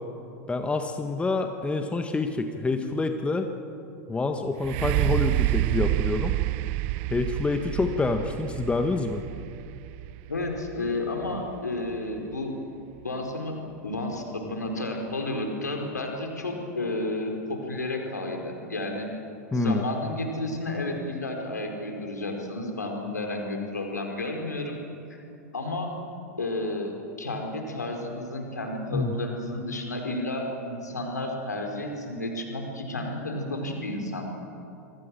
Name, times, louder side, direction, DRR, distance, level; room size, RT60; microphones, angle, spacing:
voice 1, 0.5-3.5 4.1-6.3 7.1-9.2 19.5-19.8 28.9-29.1, left 3 dB, 10° left, 6 dB, 1.6 m, -27 dB
sound 1, 4.6-12.3 13.0-13.1, right 19 dB, 50° right, 0.5 m, -29 dB
voice 2, 10.3-12.6 13.0-19.1 19.5-24.8 25.1-25.2 25.5-26.0 26.4-34.2, left 2 dB, 80° left, 2 dB, 4.8 m, -31 dB
27.0 x 23.0 x 7.6 m, 2.7 s
figure-of-eight pair, 90°, 9 cm